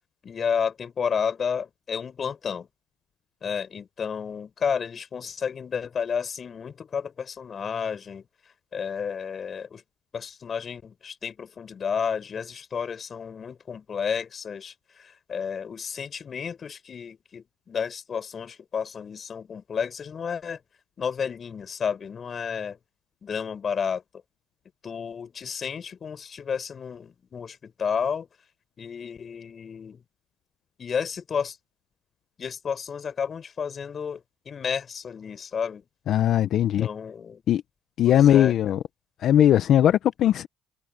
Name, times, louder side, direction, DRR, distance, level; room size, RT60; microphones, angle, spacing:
voice 1, 0.2-2.7 3.4-8.3 8.7-9.8 10.1-20.6 21.0-22.8 23.2-24.0 24.8-28.3 28.8-30.0 30.8-31.6 32.4-35.9 36.6-37.4 38.0-38.6, left 6 dB, 45° left, 6.5 m, -31 dB
voice 2, 36.1-36.9 37.5-37.6 38.0-38.8 39.2-40.5, left 11 dB, 65° left, 1.0 m, -19 dB
supercardioid pair, 75°, 0 cm